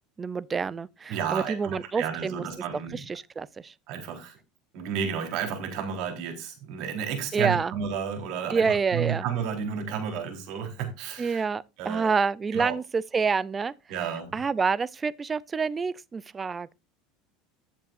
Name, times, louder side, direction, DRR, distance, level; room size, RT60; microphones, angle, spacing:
voice 1, 0.2-2.4 2.9-3.7 7.3-7.7 8.5-9.2 11.2-13.7 14.3-16.7, right 5 dB, 20° right, 0.6 m, -27 dB
voice 2, 1.1-3.0 3.9-4.4 4.7-11.5 11.8-12.2 12.5-12.8 13.9-14.4, right 7 dB, 55° right, 4.1 m, -32 dB
14.5 x 7.5 x 2.6 m
supercardioid pair, 135°, 0 cm